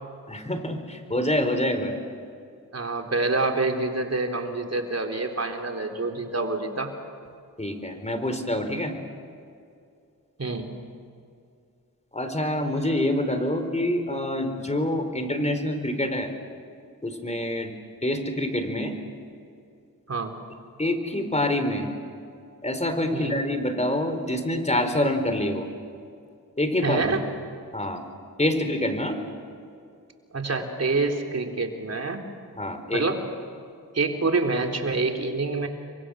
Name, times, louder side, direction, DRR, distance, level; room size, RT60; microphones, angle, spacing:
voice 1, 0.3-2.0 7.6-8.9 12.1-16.3 17.0-17.7 18.0-19.0 20.8-21.9 22.6-25.7 26.6-27.2 27.7-28.0 28.4-29.2 32.6-33.0, left 1 dB, 20° left, 7 dB, 4.5 m, -26 dB
voice 2, 2.7-6.9 10.4-10.7 20.1-20.3 23.1-23.4 26.8-27.2 30.3-32.2 32.9-33.2 33.9-35.7, right 3 dB, 45° right, 3 dB, 3.7 m, -27 dB
30.0 x 24.0 x 6.5 m, 2.4 s
cardioid pair, 55°, 35 cm